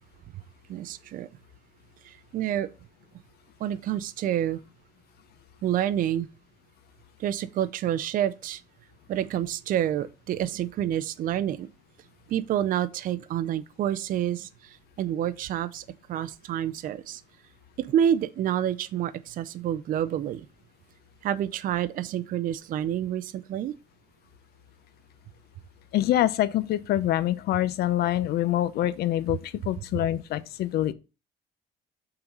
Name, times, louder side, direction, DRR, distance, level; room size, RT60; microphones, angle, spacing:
voice 1, 0.7-1.3 2.0-2.7 3.6-4.6 5.6-6.3 7.2-8.6 9.1-11.7 12.3-17.2 17.8-20.5 21.2-23.7, right 10 dB, 55° right, 0.5 m, -28 dB
voice 2, 25.9-30.9, left 13 dB, 70° left, 0.6 m, -25 dB
5.7 x 3.8 x 5.3 m
cardioid pair, 110°, 17 cm